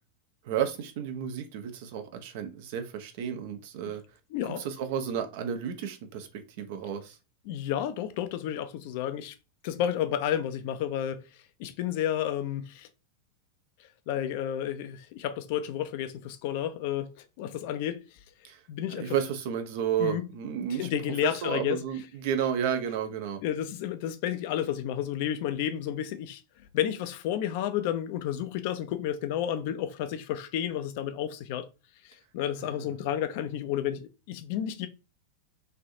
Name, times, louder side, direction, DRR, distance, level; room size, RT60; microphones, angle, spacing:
voice 1, 0.4-4.0 4.6-6.3 6.6-7.2 18.4-18.6 19.0-20.9 21.4-23.4 32.7-32.8, right 8 dB, 50° right, 0.5 m, -32 dB
voice 2, 4.3-4.6 7.5-9.3 9.6-11.2 11.6-12.9 14.1-18.0 18.7-19.1 20.0-20.3 20.8-21.8 23.4-26.4 26.7-31.7 32.0-34.9, left 10 dB, 50° left, 0.4 m, -31 dB
3.2 x 2.7 x 2.6 m
figure-of-eight pair, 90°, 0 cm